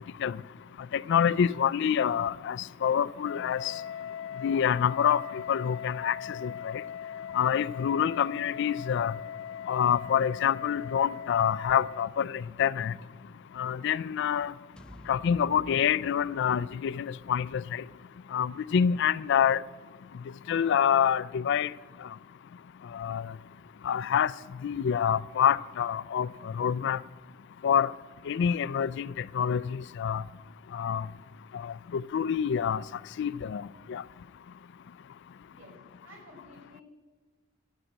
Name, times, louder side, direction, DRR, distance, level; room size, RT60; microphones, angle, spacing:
voice 1, 0.9-3.7 4.4-6.2 6.4-6.7 7.3-9.1 9.7-12.9 13.6-14.5 15.1-17.8 18.3-19.6 20.5-21.7 22.9-23.3 23.8-24.3 24.6-27.0 27.6-27.9 28.3-30.2 30.7-31.1 31.6-32.8 33.2-33.6 33.9-34.0, left 8 dB, 60° left, 0.3 m, -27 dB
Wind instrument woodwind instrument, 3.2-12.1, left 8 dB, 80° left, 1.0 m, -40 dB
sound 1, 14.8-19.0, equal, 5° left, 0.5 m, -53 dB
voice 2, 35.5-36.8, left 1 dB, 70° right, 5.1 m, -53 dB
13.0 x 8.8 x 7.9 m
head